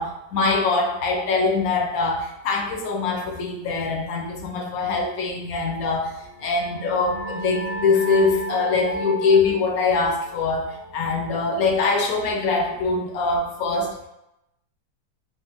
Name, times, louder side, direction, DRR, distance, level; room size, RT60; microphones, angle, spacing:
voice 1, 0.0-6.1 6.4-14.1, left 4 dB, 70° left, 1 dB, 1.0 m, -23 dB
sound 1, 6.3-11.7, right 1 dB, 45° left, 0.5 m, -33 dB
3.5 x 2.4 x 2.8 m, 0.87 s
omnidirectional pair, 1.8 m